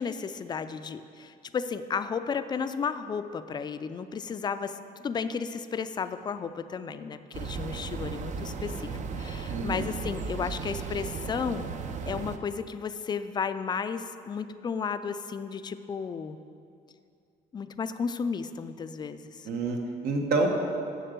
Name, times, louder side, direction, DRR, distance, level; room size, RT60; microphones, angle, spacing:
voice 1, 0.0-11.7 12.1-16.4 17.5-19.5, left 6 dB, 25° left, 11 dB, 0.4 m, -33 dB
sound 1, 7.3-12.4, right 5 dB, 45° right, 0.6 m, -35 dB
voice 2, 9.5-9.8 19.4-20.5, right 3 dB, 70° right, 2 dB, 1.2 m, -28 dB
7.7 x 6.7 x 6.6 m, 2.4 s
cardioid pair, 110°, 17 cm